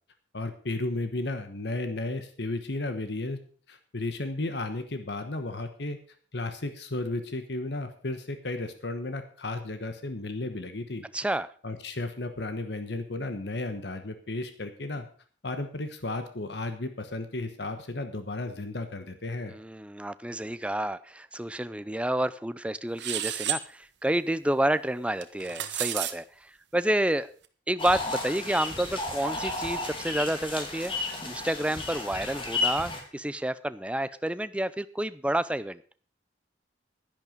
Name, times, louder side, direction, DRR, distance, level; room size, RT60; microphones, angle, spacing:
voice 1, 0.3-3.4 3.7-6.0 6.3-11.1 11.6-15.1 15.4-19.5, left 2 dB, 60° left, 9 dB, 1.1 m, -34 dB
voice 2, 11.1-11.5 19.5-27.3 27.7-30.9 31.2-35.8, right 1 dB, 5° right, 14 dB, 0.4 m, -29 dB
sound 1, 23.0-23.6 25.2-26.1, right 10 dB, 70° right, 1.1 m, -31 dB
sound 2, 27.8-33.0, left 3 dB, 30° left, 2.4 m, -33 dB
11.0 x 11.0 x 5.2 m, 0.43 s
head